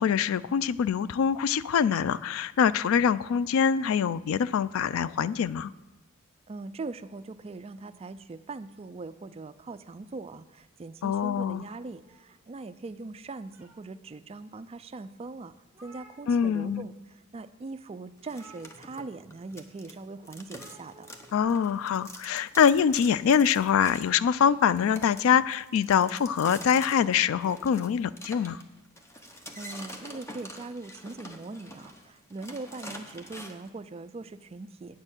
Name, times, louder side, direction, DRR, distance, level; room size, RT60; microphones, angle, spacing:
voice 1, 0.0-5.7 11.0-11.6 16.3-16.9 21.3-28.6, left 7 dB, 70° left, 17 dB, 0.3 m, -24 dB
voice 2, 6.5-15.5 15.8-21.1 29.5-35.0, right 3 dB, 30° right, 12 dB, 0.3 m, -41 dB
sound 1, 11.6-12.8 13.2-14.1 14.7-14.8 15.2-15.3 15.5-16.8 17.1-17.3 18.2-19.3 20.5-21.3, right 2 dB, 10° right, 1.5 m, -56 dB
sound 2, 18.2-20.0 20.2-33.7, equal, 15° left, 0.8 m, -46 dB
8.9 x 6.6 x 7.2 m, 1.1 s
head